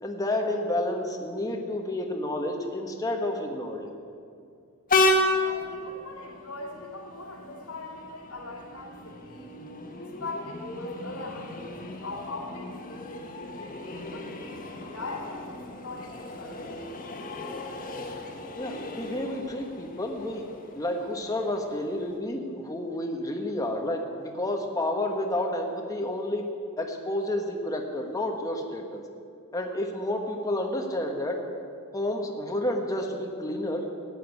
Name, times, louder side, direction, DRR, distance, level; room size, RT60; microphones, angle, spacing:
voice 1, 0.0-3.9 18.6-26.5 26.8-29.0 29.5-31.4 31.9-33.9, left 1 dB, 15° left, 2 dB, 1.4 m, -30 dB
Train, 4.9-22.2, left 2 dB, 40° left, 1.6 m, -33 dB
voice 2, 5.3-9.5 10.0-16.8, left 2 dB, 85° left, -3 dB, 2.8 m, -41 dB
14.5 x 10.0 x 8.4 m, 2.3 s
head